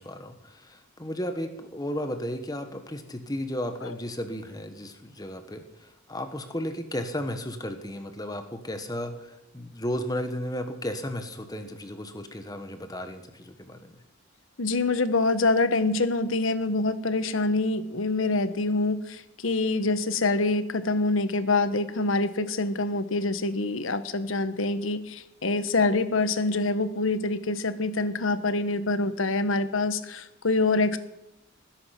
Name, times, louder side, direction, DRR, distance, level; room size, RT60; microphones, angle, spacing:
voice 1, 0.0-13.9, equal, 20° left, 7 dB, 1.4 m, -34 dB
voice 2, 14.6-31.0, left 3 dB, 75° left, 12 dB, 1.2 m, -25 dB
20.0 x 10.5 x 6.0 m, 0.91 s
head